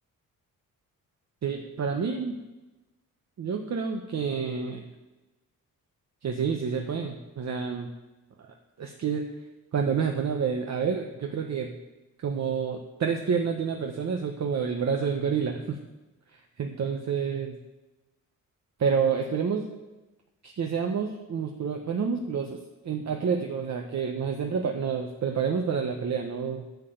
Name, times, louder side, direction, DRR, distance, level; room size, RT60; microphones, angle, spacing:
voice 1, 1.4-2.4 3.4-4.8 6.2-7.9 8.8-9.2 9.7-11.7 12.2-15.8 16.3-17.5 18.8-19.7 20.4-22.6 22.8-26.7, right 6 dB, 50° right, 3 dB, 1.0 m, -28 dB
10.5 x 5.9 x 7.9 m, 1.1 s
cardioid pair, 110°, 35 cm